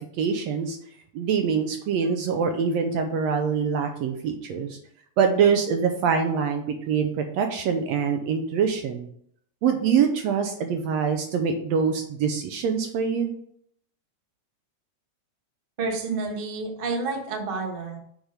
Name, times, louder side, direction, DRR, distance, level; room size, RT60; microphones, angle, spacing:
voice 1, 0.2-0.8 1.1-4.8 5.2-9.1 9.6-13.3, right 6 dB, 75° right, 5 dB, 1.7 m, -24 dB
voice 2, 15.8-18.0, right 3 dB, 45° right, 1 dB, 0.7 m, -29 dB
6.4 x 4.8 x 5.0 m, 0.67 s
omnidirectional pair, 3.5 m